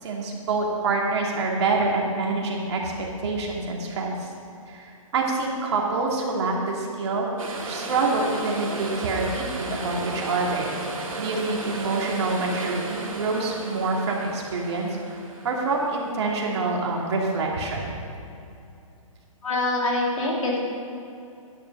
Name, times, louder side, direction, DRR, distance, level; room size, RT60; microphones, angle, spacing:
voice 1, 0.0-4.3 4.7-7.3 7.7-10.7 11.2-15.0 15.4-17.9, right 3 dB, 50° right, -2 dB, 2.8 m, -26 dB
sound 1, 7.4-17.7 18.0-18.1, right 2 dB, 80° right, 2.1 m, -35 dB
voice 2, 19.4-20.6, left 2 dB, 75° left, -3 dB, 3.5 m, -24 dB
12.0 x 10.5 x 5.5 m, 2.6 s
hypercardioid pair, 135°, 18 cm